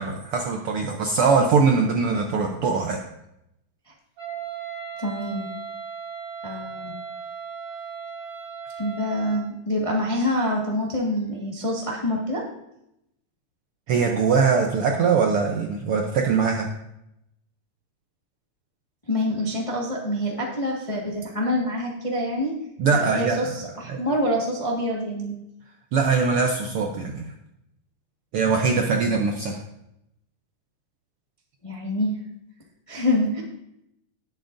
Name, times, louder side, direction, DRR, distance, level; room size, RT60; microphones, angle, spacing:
voice 1, 0.0-3.0 13.9-16.7 22.8-23.5 23.9-24.0 25.9-27.3 28.3-29.6, right 5 dB, 70° right, 2 dB, 1.4 m, -22 dB
Wind instrument woodwind instrument, 4.2-9.5, right 6 dB, 50° right, 4.2 m, -36 dB
voice 2, 5.0-5.5 6.4-6.9 8.8-12.4 19.1-22.6 22.9-25.3 31.6-32.1 32.9-33.4, left 1 dB, 20° left, -2 dB, 0.9 m, -26 dB
19.0 x 7.5 x 2.6 m, 0.82 s
omnidirectional pair, 3.4 m